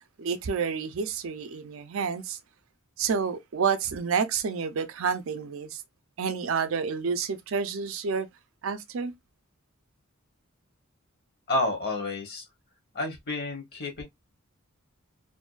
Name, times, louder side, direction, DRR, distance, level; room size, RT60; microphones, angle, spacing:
voice 1, 0.2-2.4 3.0-5.8 6.2-8.3 8.6-9.1, right 6 dB, 65° right, 0.4 m, -29 dB
voice 2, 11.5-12.5 12.9-14.0, left 2 dB, 50° left, 0.9 m, -30 dB
2.5 x 2.2 x 2.3 m
head